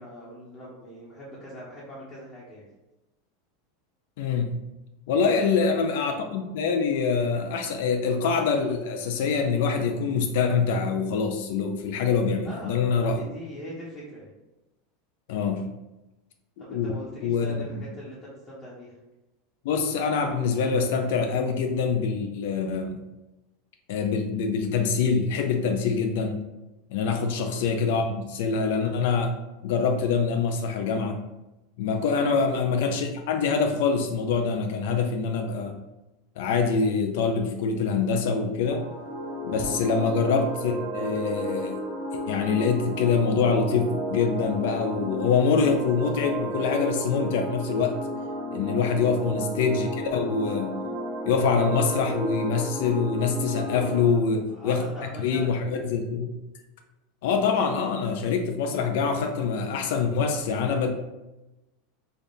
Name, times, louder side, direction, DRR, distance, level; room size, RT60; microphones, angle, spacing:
voice 1, 0.0-2.7 5.3-5.9 12.4-14.3 16.6-19.0 27.1-27.4 32.1-32.4 39.8-40.0 53.7-55.6, equal, 20° left, -8 dB, 1.0 m, -42 dB
voice 2, 4.2-4.6 5.1-13.2 15.3-15.6 16.7-17.0 17.2-17.7 19.6-23.0 23.9-26.4 26.9-29.3 29.6-31.2 31.8-35.7 36.4-38.8 39.4-41.8 42.3-47.9 48.5-50.8 51.3-54.8 55.2-56.3 57.2-60.9, left 5 dB, 70° left, 5 dB, 0.4 m, -25 dB
sound 1, 38.7-54.1, equal, 70° right, 1.2 m, -33 dB
3.4 x 2.4 x 4.0 m, 1.0 s
supercardioid pair, 145°, 0 cm